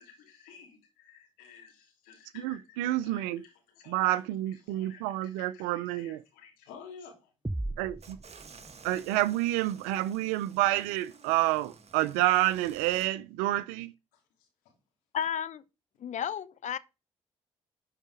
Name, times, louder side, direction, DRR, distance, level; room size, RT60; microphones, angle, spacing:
voice 1, 0.0-2.8 3.0-7.3 14.1-14.8, left 6 dB, 85° left, 3.1 m, -53 dB
voice 2, 2.4-3.4 3.9-6.2 7.8-8.2 8.8-13.9, right 16 dB, 85° right, 0.5 m, -28 dB
sound 1, 7.4-9.2, right 1 dB, 10° right, 0.5 m, -37 dB
sound 2, 8.0-13.1, right 5 dB, 50° right, 1.6 m, -53 dB
voice 3, 15.1-15.6 16.0-16.8, left 8 dB, 55° left, 0.8 m, -32 dB
12.0 x 4.9 x 4.9 m
hypercardioid pair, 45°, 14 cm